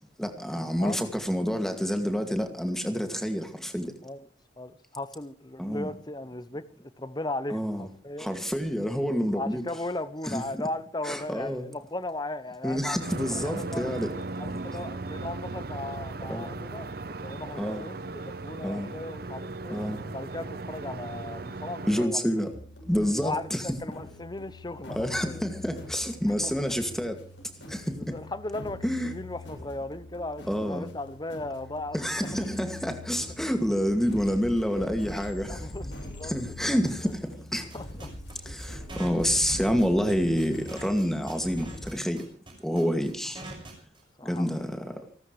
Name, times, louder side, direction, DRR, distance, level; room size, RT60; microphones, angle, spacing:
voice 1, 0.2-3.9 5.6-5.9 7.5-7.9 8.2-9.6 10.3-10.4 11.0-11.7 12.6-14.1 16.3-16.5 17.6-17.9 18.6-18.9 19.7-20.0 21.9-22.5 22.9-23.8 25.0-27.2 27.7-28.1 28.8-29.1 30.4-30.9 31.9-35.7 36.2-37.7 38.5-42.3 42.6-43.4 44.2-45.0, equal, ahead, 2.2 m, -28 dB
voice 2, 0.8-1.2 4.0-4.3 4.6-8.3 9.3-13.9 14.4-19.8 20.1-22.3 23.2-25.4 26.4-26.5 27.9-32.4 35.5-36.3 36.6-36.8 37.0-37.1 37.7-38.1 44.2-44.6, left 2 dB, 20° left, 0.8 m, -37 dB
sound 1, 13.0-22.1, right 3 dB, 50° right, 0.8 m, -37 dB
sound 2, 22.5-41.9, left 1 dB, 75° left, 7.7 m, -43 dB
sound 3, 37.7-44.0, right 2 dB, 25° right, 6.0 m, -44 dB
29.5 x 13.0 x 3.2 m
head